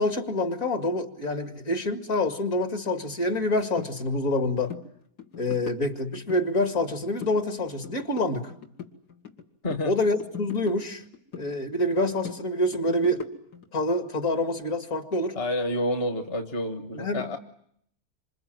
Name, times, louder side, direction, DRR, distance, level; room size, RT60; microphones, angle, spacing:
voice 1, 0.0-4.7 5.4-8.5 9.8-11.0 11.4-13.2 13.7-15.4 16.9-17.3, left 1 dB, 55° left, 6 dB, 2.5 m, -26 dB
sound 1, 3.8-3.9 4.3-4.4 4.7-4.9 5.2-6.4 6.8-7.4 7.7-9.4 9.7-11.5 11.8-13.6, left 7 dB, 90° left, 2.7 m, -40 dB
voice 2, 15.3-17.4, left 1 dB, 40° left, 6 dB, 1.5 m, -29 dB
27.0 x 27.0 x 7.7 m, 0.71 s
omnidirectional pair, 1.7 m